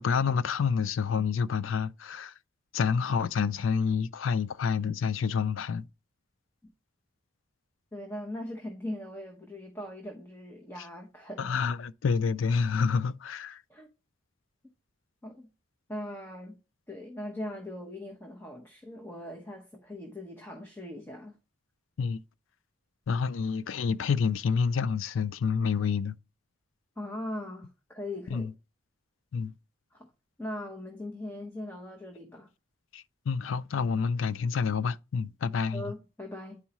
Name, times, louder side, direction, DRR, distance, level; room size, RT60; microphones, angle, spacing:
voice 1, 0.0-2.3 2.7-5.9 11.4-13.6 22.0-22.2 23.1-26.2 28.3-28.5 29.3-29.5 32.9-35.8, left 5 dB, 80° left, 0.4 m, -28 dB
voice 2, 7.9-11.5 13.7-13.9 15.2-15.5 15.9-16.6 16.9-21.3 27.0-28.5 29.9-30.1 30.4-32.5 35.7-36.6, left 1 dB, 10° left, 0.9 m, -40 dB
9.7 x 4.6 x 2.9 m
head